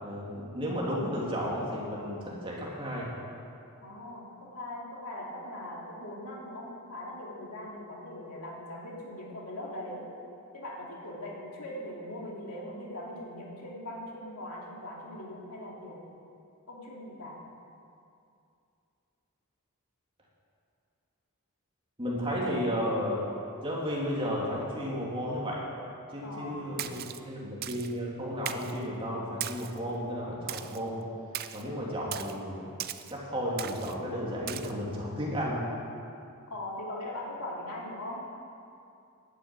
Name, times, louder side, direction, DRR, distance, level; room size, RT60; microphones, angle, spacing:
voice 1, 0.0-3.1 22.0-23.2 23.6-25.6 26.1-31.1 31.5-32.7 33.1-35.7, equal, 25° right, -4 dB, 2.9 m, -33 dB
voice 2, 3.8-10.0 10.5-16.0 16.7-17.4 26.2-26.6 36.5-38.2, left 1 dB, 85° left, -3 dB, 3.0 m, -40 dB
Splash splatter, 26.8-27.2 27.6-27.9 28.5-28.8 29.4-29.8 30.5-30.8 31.3-31.6 32.1-32.3 32.8-33.1 33.6-33.9 34.5-34.7, right 11 dB, 45° right, 0.5 m, -37 dB
11.5 x 9.3 x 9.1 m, 2.5 s
head